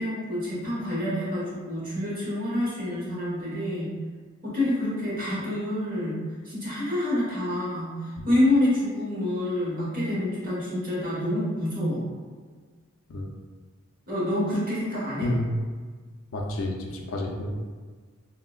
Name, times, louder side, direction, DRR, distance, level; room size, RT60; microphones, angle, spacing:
voice 1, 0.0-3.9 4.4-6.2 6.4-12.1 14.1-15.3, left 1 dB, 45° right, -8 dB, 1.2 m, -27 dB
voice 2, 16.3-17.5, left 1 dB, 70° left, 1 dB, 0.4 m, -30 dB
3.7 x 2.0 x 2.3 m, 1.5 s
head